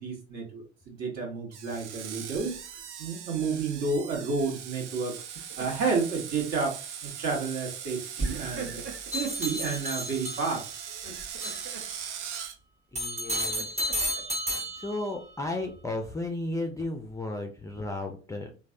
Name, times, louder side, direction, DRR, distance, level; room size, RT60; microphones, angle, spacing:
voice 1, 0.0-2.6 3.0-8.8 9.1-10.7, right 4 dB, 50° right, 0 dB, 1.4 m, -31 dB
Screech, 1.5-12.6, right 8 dB, 85° right, 0.5 m, -40 dB
Laughter, 2.3-2.9 5.2-6.1 6.5-6.7 8.2-9.3 10.9-11.9 13.0-14.2, right 3 dB, 35° right, 1.1 m, -39 dB
sound 1, 9.1-10.8 11.4-11.7 13.0-15.2, equal, 20° right, 1.4 m, -32 dB
voice 2, 12.9-13.7 14.8-18.5, left 2 dB, 10° left, 3 dB, 0.4 m, -34 dB
3.2 x 2.3 x 2.5 m, 0.36 s
hypercardioid pair, 65°, 34 cm